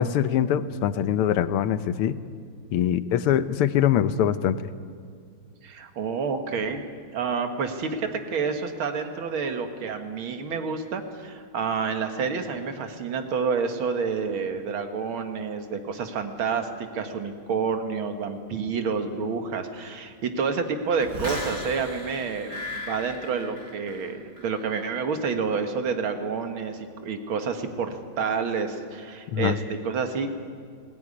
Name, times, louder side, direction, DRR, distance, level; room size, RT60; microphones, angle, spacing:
voice 1, 0.0-2.2 2.7-4.7 29.3-29.6, left 10 dB, 85° left, 13 dB, 1.7 m, -23 dB
voice 2, 5.6-6.9 7.1-16.7 16.9-30.3, right 5 dB, 70° right, 6 dB, 2.3 m, -29 dB
sound 1, 21.0-24.1 24.4-24.8, left 1 dB, 50° right, 6.0 m, -36 dB
20.5 x 17.0 x 9.7 m, 2.2 s
omnidirectional pair, 2.4 m